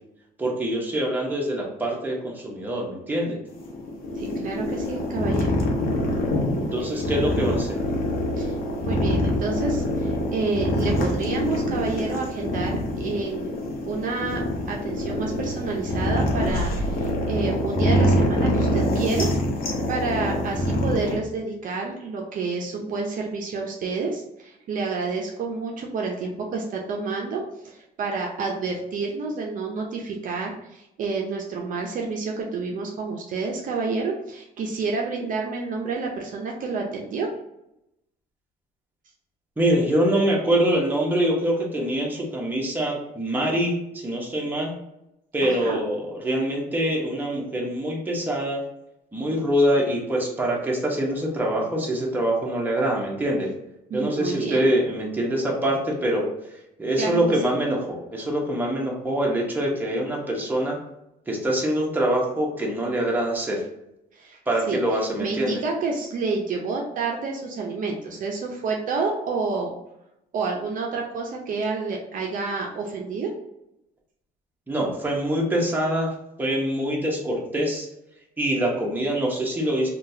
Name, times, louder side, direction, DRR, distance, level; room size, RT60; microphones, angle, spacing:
voice 1, 0.4-3.4 6.7-7.8 39.6-44.7 45.3-48.6 49.1-53.5 53.9-56.3 56.8-60.8 61.3-63.6 64.5-65.6 74.7-77.9 78.4-79.9, right 1 dB, 10° right, -2 dB, 0.9 m, -24 dB
sound 1, 3.5-21.2, left 1 dB, 60° left, 0.8 m, -25 dB
voice 2, 4.2-5.5 8.4-8.6 8.8-13.5 13.9-14.4 14.7-19.3 19.9-37.3 45.4-45.8 53.9-54.7 57.0-57.2 64.1-64.4 64.7-64.8 65.2-69.7 70.3-73.3, right 4 dB, 50° right, 0 dB, 0.6 m, -29 dB
3.8 x 2.3 x 2.6 m, 0.86 s
cardioid pair, 110°, 17 cm